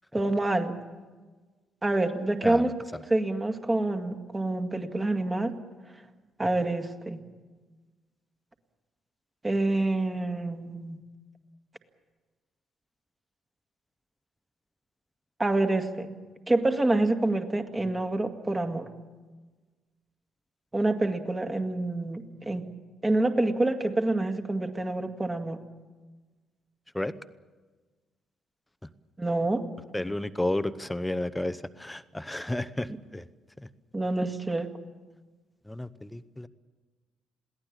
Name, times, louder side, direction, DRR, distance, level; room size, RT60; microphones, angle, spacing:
voice 1, 0.1-0.7 1.8-2.7 3.1-5.5 6.4-7.2 9.4-11.0 15.4-16.1 16.5-18.9 20.7-22.7 23.0-25.6 29.2-29.7 33.9-34.7, right 2 dB, 20° right, 5 dB, 2.1 m, -27 dB
voice 2, 2.4-3.0 6.6-6.7 26.9-27.1 28.8-28.9 29.9-33.3 33.6-33.7 35.7-36.5, left 1 dB, 10° left, 14 dB, 0.9 m, -32 dB
22.0 x 17.0 x 8.7 m, 1.3 s
figure-of-eight pair, 45°, 0 cm